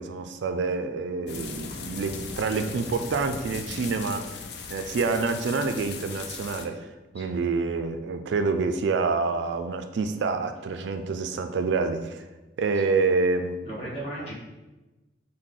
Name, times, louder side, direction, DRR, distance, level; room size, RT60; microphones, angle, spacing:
voice 1, 0.0-4.3 4.7-6.9 7.1-12.2 12.6-13.9 14.2-14.3, right 4 dB, 70° right, 8 dB, 0.3 m, -27 dB
sound 1, 1.3-6.6, left 5 dB, 60° left, 0.4 m, -38 dB
voice 2, 13.7-14.3, right 1 dB, 35° left, -6 dB, 1.3 m, -36 dB
6.3 x 2.1 x 3.7 m, 1.1 s
head